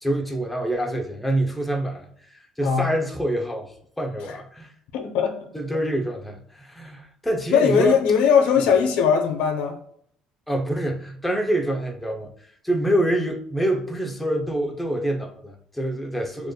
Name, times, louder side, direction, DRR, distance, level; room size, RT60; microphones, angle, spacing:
voice 1, 0.0-2.1 2.6-4.7 5.5-8.0 10.5-12.3 12.6-16.5, right 1 dB, 5° left, 0.6 m, -26 dB
voice 2, 4.9-5.5 7.5-9.7, left 7 dB, 80° left, 0.7 m, -20 dB
6.5 x 2.5 x 2.2 m
cardioid pair, 105°, 2 cm